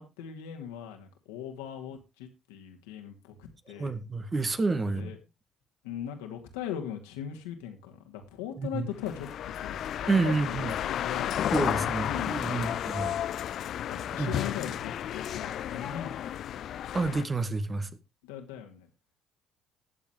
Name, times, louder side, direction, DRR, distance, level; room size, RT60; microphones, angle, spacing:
voice 1, 0.0-3.9 4.8-5.2 5.8-11.6 11.8-12.8 13.9-16.2 18.2-18.9, left 9 dB, 80° left, 2.4 m, -40 dB
voice 2, 3.8-5.1 8.6-8.9 10.1-10.7 11.5-13.2 14.2-14.4 16.9-17.9, right 3 dB, 30° right, 1.7 m, -29 dB
sound 1, 9.0-17.2, left 10 dB, 55° left, 0.6 m, -32 dB
21.0 x 7.3 x 3.1 m
hypercardioid pair, 50°, 0 cm